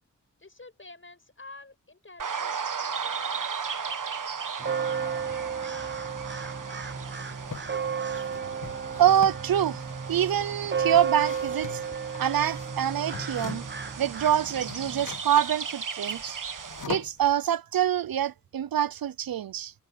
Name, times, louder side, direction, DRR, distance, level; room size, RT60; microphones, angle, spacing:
voice 1, 0.4-3.5, left 3 dB, 35° left, 6.7 m, -49 dB
sound 1, 2.2-16.8, right 6 dB, 65° right, 1.3 m, -37 dB
sound 2, 4.6-15.0, right 6 dB, 30° right, 1.1 m, -33 dB
sound 3, 7.0-7.7 8.1-13.9 14.1-17.3, left 5 dB, 65° left, 1.4 m, -42 dB
voice 2, 9.0-9.8 10.1-11.8 12.2-13.7 14.0-16.3 16.9-19.7, right 10 dB, 85° right, 0.6 m, -25 dB
wide cardioid pair, 85°, 34 cm